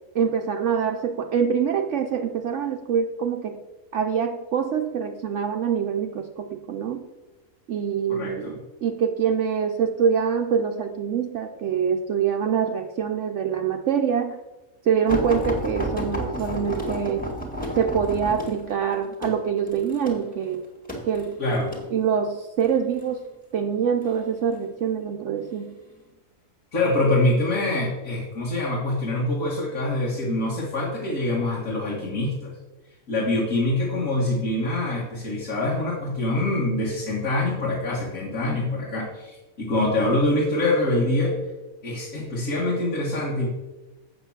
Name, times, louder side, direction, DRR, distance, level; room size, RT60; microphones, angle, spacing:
voice 1, 0.1-3.6 3.9-7.1 7.7-14.4 14.9-17.2 17.8-20.6 21.1-21.4 21.9-23.2 23.5-25.8, right 7 dB, 65° right, 4 dB, 1.0 m, -25 dB
voice 2, 8.1-8.6 21.4-21.7 26.7-32.5 33.1-41.4 41.8-43.5, left 2 dB, 80° left, -4 dB, 2.3 m, -25 dB
sound 1, 15.1-21.9 22.6-23.1 24.0-24.7 25.4-25.6 26.0-26.1, equal, 5° left, 1.9 m, -31 dB
8.0 x 7.0 x 7.2 m, 1.1 s
omnidirectional pair, 1.4 m